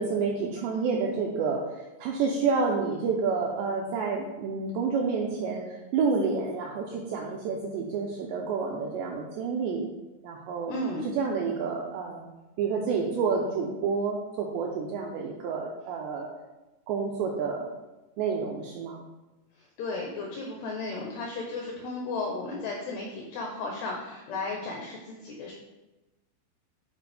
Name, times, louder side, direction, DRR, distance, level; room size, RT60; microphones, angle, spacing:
voice 1, 0.0-5.6 5.9-9.9 10.2-10.7 11.2-12.3 12.6-16.3 16.9-17.7 18.2-19.0, right 5 dB, 90° right, -1 dB, 2.4 m, -29 dB
voice 2, 10.7-11.1 19.6-25.5, left 2 dB, 85° left, -1 dB, 2.3 m, -34 dB
9.6 x 4.1 x 3.4 m, 1.1 s
omnidirectional pair, 5.7 m